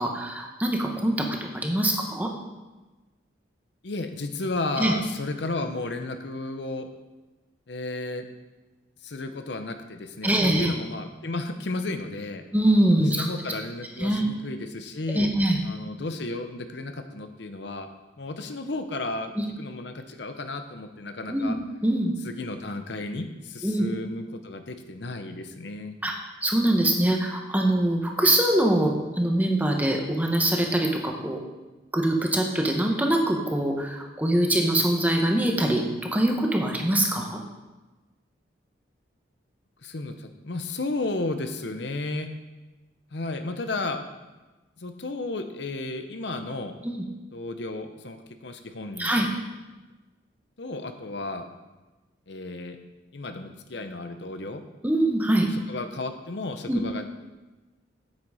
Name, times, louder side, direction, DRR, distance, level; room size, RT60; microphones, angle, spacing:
voice 1, 0.0-2.3 4.8-4.9 10.2-10.7 12.5-13.3 14.0-14.3 15.1-15.6 19.4-19.5 21.3-21.5 21.8-22.1 23.6-23.9 26.0-26.1 26.4-31.4 31.9-37.4 46.8-46.9 49.0-49.3 54.8-55.5 56.7-56.8, right 1 dB, 10° right, 2 dB, 1.0 m, -23 dB
voice 2, 3.8-6.9 7.7-8.3 9.0-12.4 13.0-15.3 15.6-17.9 18.2-21.6 22.2-26.0 39.8-42.3 43.1-44.0 44.8-46.7 47.3-49.1 50.6-51.5 52.3-52.8 53.1-54.6 55.7-57.0, left 2 dB, 65° left, 7 dB, 0.8 m, -33 dB
8.9 x 8.5 x 4.9 m, 1.1 s
head